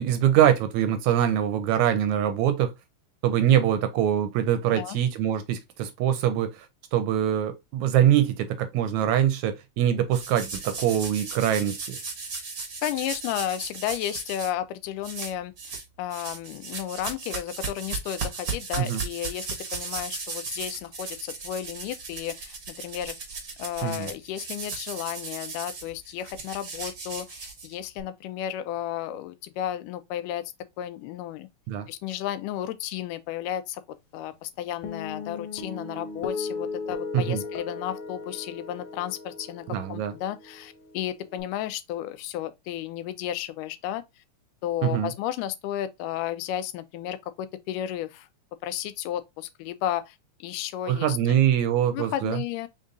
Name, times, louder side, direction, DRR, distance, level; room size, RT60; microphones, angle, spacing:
voice 1, 0.0-2.7 3.2-6.7 6.9-12.0 18.8-19.0 23.8-24.1 31.7-31.9 37.1-37.4 39.7-40.1 44.8-45.1 50.9-52.4, right 10 dB, 80° right, 1.9 m, -23 dB
sound 1, 10.1-14.5 15.0-15.9 16.1-28.0, right 4 dB, 60° right, 0.9 m, -36 dB
voice 2, 12.8-15.5 16.0-23.2 23.6-31.5 31.9-33.8 34.1-44.0 44.6-48.3 48.6-51.2 51.9-52.7, left 11 dB, 90° left, 2.2 m, -33 dB
Guitar, 34.8-41.4, left 4 dB, 70° left, 1.3 m, -37 dB
5.4 x 3.7 x 2.5 m
omnidirectional pair, 3.6 m